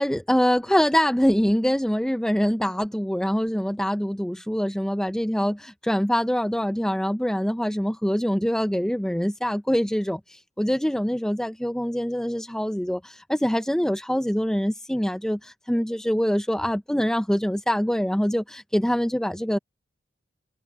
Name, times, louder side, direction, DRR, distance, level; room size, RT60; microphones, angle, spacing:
voice 1, 0.0-19.6, equal, 5° left, 0.5 m, -24 dB
head